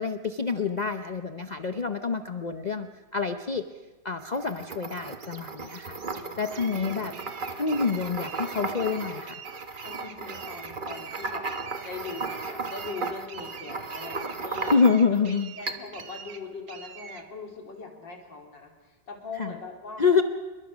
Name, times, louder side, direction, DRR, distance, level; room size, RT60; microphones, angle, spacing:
voice 1, 0.0-3.6 4.0-6.0 6.4-7.1 7.6-9.4 14.6-15.5 19.4-19.5 20.0-20.2, left 5 dB, 55° left, 8 dB, 0.4 m, -26 dB
sound 1, 4.2-15.2 15.7-16.1, right 3 dB, 30° right, 1.2 m, -35 dB
sound 2, 4.9-17.3, right 7 dB, 65° right, 1.8 m, -45 dB
voice 2, 6.6-7.3 9.8-11.4 11.8-14.8 15.1-20.1, left 4 dB, 80° left, 2 dB, 4.2 m, -41 dB
28.0 x 22.5 x 6.2 m, 1.2 s
omnidirectional pair, 1.9 m